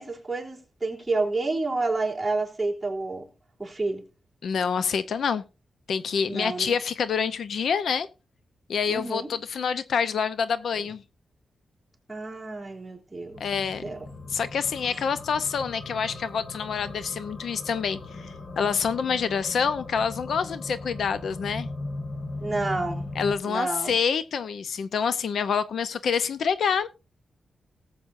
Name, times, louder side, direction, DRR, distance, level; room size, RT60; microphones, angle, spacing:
voice 1, 0.0-3.3 3.6-4.0 6.3-6.7 8.9-9.3 12.1-13.4 13.8-14.0 14.9-15.0 22.4-23.1 23.4-24.0, right 3 dB, 10° right, 3.4 m, -29 dB
voice 2, 4.4-5.4 5.9-8.1 8.7-11.0 13.4-13.9 14.3-21.7 23.2-26.9, left 6 dB, 75° left, 0.7 m, -27 dB
sound 1, 13.3-23.3, left 2 dB, 55° left, 2.3 m, -38 dB
19.0 x 7.8 x 2.6 m
wide cardioid pair, 135°, 0 cm